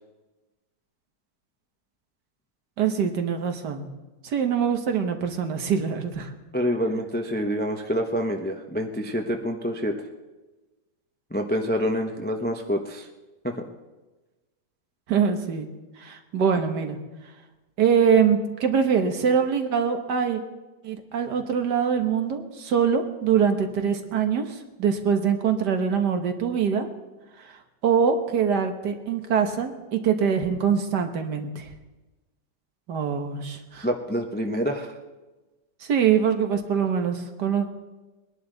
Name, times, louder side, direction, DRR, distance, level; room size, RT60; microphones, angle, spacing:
voice 1, 2.8-3.9 4.2-6.3 15.1-15.7 16.0-17.0 17.8-20.4 20.8-26.9 27.4-31.7 32.9-33.9 35.8-37.7, right 7 dB, 65° right, 6 dB, 1.7 m, -24 dB
voice 2, 6.5-9.9 11.3-13.1 13.4-13.5 33.8-34.9, equal, 10° left, 4 dB, 0.4 m, -27 dB
21.5 x 11.0 x 3.9 m, 1.2 s
omnidirectional pair, 2.0 m